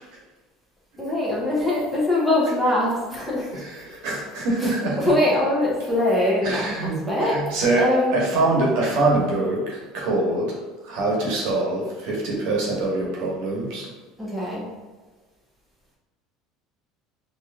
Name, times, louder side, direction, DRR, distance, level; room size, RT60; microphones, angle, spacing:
voice 1, 1.0-3.6 4.6-7.4 7.8-8.1 14.2-14.6, left 1 dB, ahead, -7 dB, 1.4 m, -23 dB
voice 2, 3.5-5.0 6.4-10.5 10.8-13.9, right 2 dB, 70° right, -2 dB, 1.1 m, -24 dB
4.6 x 2.9 x 2.6 m, 1.3 s
supercardioid pair, 110°, 0 cm